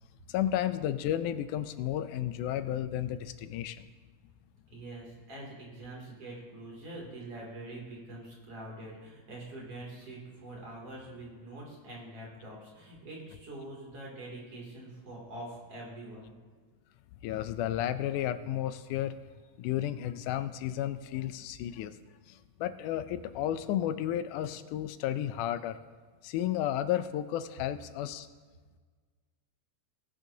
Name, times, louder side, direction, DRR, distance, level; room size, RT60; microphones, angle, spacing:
voice 1, 0.3-3.8 17.2-19.2 19.6-22.0 22.3-25.8 26.2-28.3, left 11 dB, 85° left, 12 dB, 2.1 m, -32 dB
voice 2, 4.7-16.3, right 1 dB, 50° right, -3 dB, 3.6 m, -44 dB
18.5 x 10.0 x 2.8 m, 1.5 s
omnidirectional pair, 3.6 m